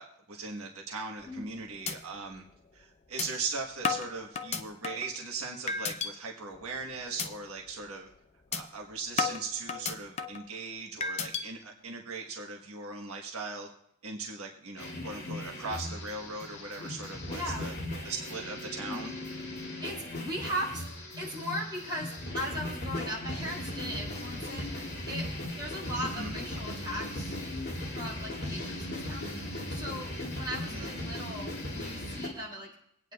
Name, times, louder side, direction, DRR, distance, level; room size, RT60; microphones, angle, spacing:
voice 1, 0.0-2.4 2.7-8.1 8.5-13.7 14.0-17.7 18.0-19.1 26.2-26.3 30.7-30.9, right 4 dB, 80° right, 0 dB, 1.4 m, -39 dB
sound 1, 1.2-1.5 1.9-2.0 2.4-2.5 3.2-3.3 3.8-5.1 5.7-6.1 6.5-6.8 7.2-7.3 7.7-7.9 8.5-8.6 9.2-10.4 11.0-11.4, left 5 dB, 30° left, 0.5 m, -32 dB
sound 2, 14.8-32.3, left 1 dB, 45° left, 2.5 m, -38 dB
voice 2, 17.3-17.7 18.9-19.1 19.8-20.8 21.2-27.4 27.9-29.3 29.7-32.7, equal, 20° right, -6 dB, 4.4 m, -38 dB
24.0 x 9.1 x 2.4 m, 0.71 s
head